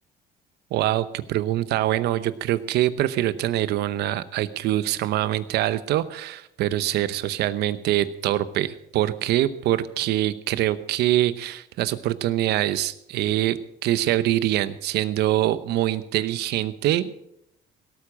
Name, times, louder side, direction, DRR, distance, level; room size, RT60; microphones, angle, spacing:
voice 1, 0.7-17.2, right 13 dB, 80° right, 14 dB, 0.9 m, -24 dB
17.5 x 8.7 x 6.2 m, 0.77 s
cardioid pair, 110°, 17 cm